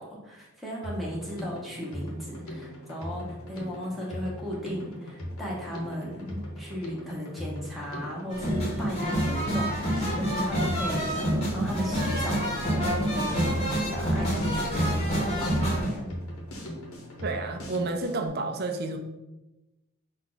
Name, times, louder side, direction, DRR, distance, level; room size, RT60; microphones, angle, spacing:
voice 1, 0.0-16.2, equal, ahead, -5 dB, 0.9 m, -36 dB
Drum kit, 0.8-18.3, equal, 75° left, 1.0 m, -39 dB
sound 1, 8.3-15.9, equal, 30° left, 1.0 m, -27 dB
voice 2, 17.2-19.0, right 3 dB, 45° right, 5 dB, 0.5 m, -30 dB
5.6 x 2.4 x 3.8 m, 1.0 s
head